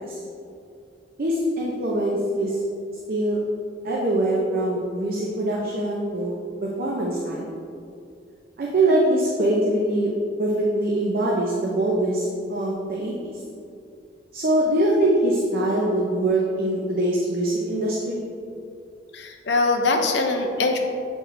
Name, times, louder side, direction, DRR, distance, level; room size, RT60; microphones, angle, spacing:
voice 1, 1.2-2.6 3.1-3.4 3.8-6.3 6.6-7.5 8.6-10.1 10.4-13.3 14.3-18.2, right 1 dB, 55° right, -4 dB, 0.7 m, -23 dB
voice 2, 19.1-20.8, left 3 dB, 65° left, 3 dB, 0.7 m, -22 dB
7.9 x 4.4 x 3.3 m, 2.4 s
head